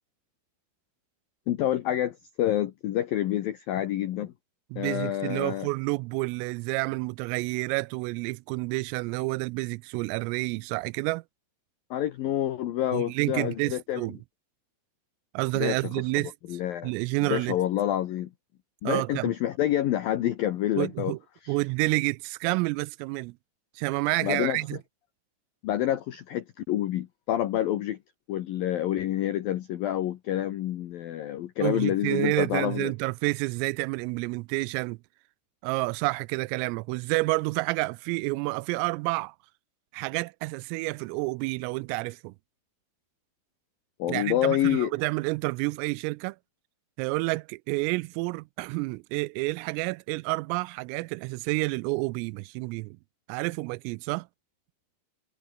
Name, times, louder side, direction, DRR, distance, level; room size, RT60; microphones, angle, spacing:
voice 1, 1.5-4.3 4.8-5.7 11.9-14.1 15.5-16.2 16.5-16.9 17.2-18.3 18.8-21.1 21.4-21.6 24.2-24.6 25.6-28.0 28.3-32.9 44.0-44.9, left 12 dB, 80° left, 2.0 m, -28 dB
voice 2, 4.7-11.2 12.9-14.2 15.3-17.6 18.8-19.3 20.8-21.2 21.5-23.4 23.8-24.8 31.6-35.0 35.6-39.4 39.9-42.3 44.1-46.4 47.0-53.0 53.3-54.3, right 25 dB, 85° right, 3.2 m, -29 dB
omnidirectional pair, 5.8 m